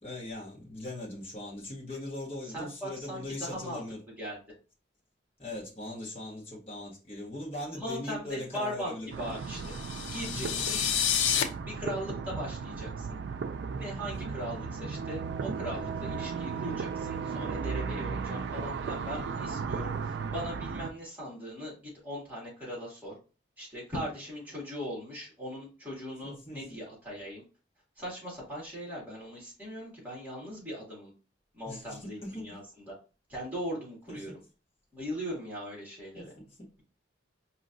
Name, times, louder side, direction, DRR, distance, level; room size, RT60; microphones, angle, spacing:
voice 1, 0.0-4.0 5.4-9.1 10.3-10.6 14.0-14.3 26.2-26.6 31.6-32.6 34.1-34.4 36.1-36.7, left 1 dB, 30° left, 1.3 m, -40 dB
voice 2, 2.5-3.8 4.2-4.4 7.7-8.9 9.2-9.6 10.1-10.8 11.6-13.2 13.8-21.7 22.0-23.1 23.6-27.4 28.0-31.1 31.5-32.9 33.3-34.3 34.9-36.3, equal, 10° right, 2.2 m, -39 dB
sound 1, 9.1-20.9, right 5 dB, 65° right, 0.3 m, -35 dB
sound 2, 9.5-11.4, left 8 dB, 80° left, 0.6 m, -29 dB
4.8 x 2.9 x 2.6 m
head